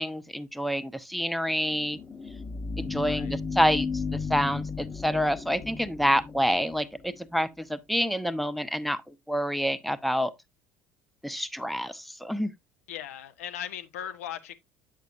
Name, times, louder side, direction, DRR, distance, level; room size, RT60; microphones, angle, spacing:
voice 1, 0.0-2.0 2.8-4.0 4.3-9.0 9.3-10.3 11.2-12.5, equal, ahead, 0.9 m, -27 dB
sound 1, 1.7-7.1, left 4 dB, 20° left, 1.1 m, -34 dB
voice 2, 3.0-3.4 12.9-14.5, left 10 dB, 70° left, 1.0 m, -38 dB
9.1 x 6.6 x 2.7 m
figure-of-eight pair, 65°, 8 cm